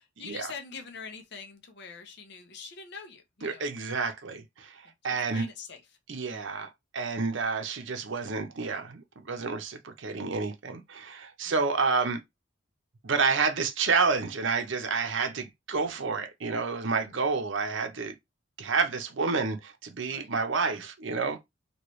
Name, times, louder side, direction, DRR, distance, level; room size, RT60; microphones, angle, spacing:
voice 1, 0.0-3.7 5.1-5.8 6.3-6.4 11.4-11.6 16.9-17.0 20.1-20.3, left 5 dB, 55° left, 0.7 m, -44 dB
voice 2, 3.4-5.5 6.1-6.7 6.9-12.2 13.0-18.1 18.6-21.4, right 4 dB, 65° right, 0.7 m, -29 dB
3.1 x 2.9 x 3.1 m
head